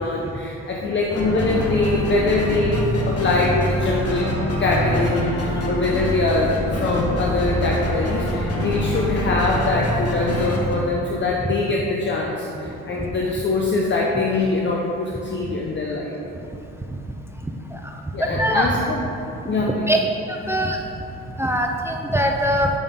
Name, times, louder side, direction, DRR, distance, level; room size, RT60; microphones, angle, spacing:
voice 1, 0.0-4.3 4.6-16.2 18.1-19.0 19.5-19.9, left 3 dB, 40° left, -2 dB, 0.7 m, -23 dB
sound 1, 1.1-10.8, equal, 55° left, 1.2 m, -25 dB
voice 2, 18.2-18.7 19.9-20.0 20.3-20.8 21.4-22.7, equal, 10° right, 1 dB, 0.5 m, -21 dB
7.1 x 5.3 x 3.7 m, 2.9 s
cardioid pair, 90°, 30 cm